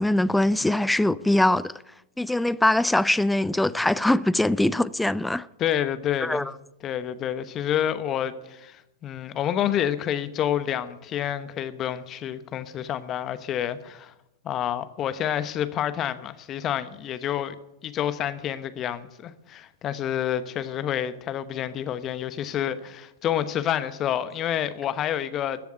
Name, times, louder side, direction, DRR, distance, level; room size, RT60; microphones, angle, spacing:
voice 1, 0.0-1.7 2.2-5.5 6.2-6.4, left 1 dB, 5° left, 0.5 m, -22 dB
voice 2, 5.6-6.5 6.8-14.1 14.4-17.5 17.8-25.6, left 10 dB, 30° left, 1.0 m, -28 dB
14.0 x 7.0 x 9.8 m
hypercardioid pair, 105°, 0 cm